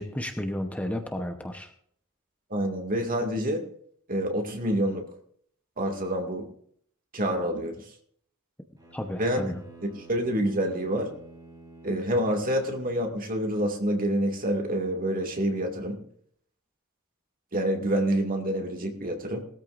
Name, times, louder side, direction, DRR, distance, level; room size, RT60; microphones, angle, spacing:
voice 1, 0.0-1.7 8.9-9.6, left 1 dB, 5° left, 4 dB, 1.0 m, -32 dB
voice 2, 2.5-3.7 4.1-5.1 5.8-6.5 7.1-7.7 9.2-9.5 10.1-11.1 11.8-16.0 17.5-19.4, right 1 dB, 40° right, 3 dB, 2.3 m, -27 dB
Bowed string instrument, 8.8-13.2, right 2 dB, 20° right, 4.7 m, -50 dB
20.0 x 13.5 x 2.6 m, 0.63 s
head